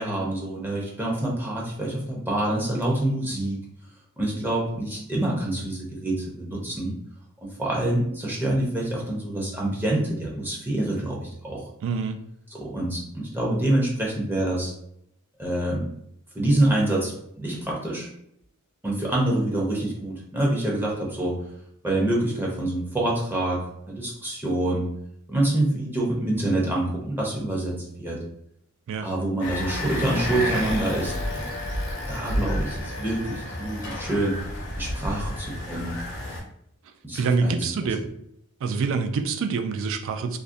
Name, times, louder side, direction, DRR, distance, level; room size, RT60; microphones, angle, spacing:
voice 1, 0.0-3.6 4.2-6.9 7.4-11.6 12.5-14.7 15.4-15.9 16.3-18.1 18.8-21.4 21.8-24.9 25.3-28.2 29.0-31.5 32.1-34.4 34.8-35.9 37.0-37.9, right 1 dB, 10° right, -4 dB, 0.5 m, -26 dB
voice 2, 11.8-12.2 28.9-29.1 37.1-38.0 38.6-40.4, right 4 dB, 60° right, 6 dB, 0.3 m, -26 dB
sound 1, 29.4-36.4, left 1 dB, 60° left, 0.6 m, -30 dB
2.4 x 2.0 x 2.5 m, 0.74 s
head